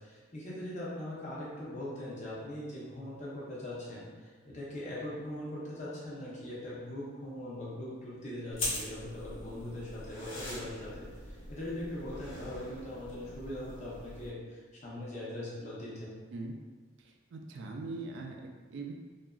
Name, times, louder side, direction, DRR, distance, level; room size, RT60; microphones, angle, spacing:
voice 1, 0.0-16.1, left 1 dB, 35° left, -7 dB, 0.6 m, -41 dB
sound 1, 8.5-14.3, left 1 dB, 85° left, 0.9 m, -42 dB
voice 2, 17.0-18.9, right 3 dB, 65° right, 2 dB, 0.3 m, -41 dB
2.8 x 2.4 x 2.3 m, 1.4 s
head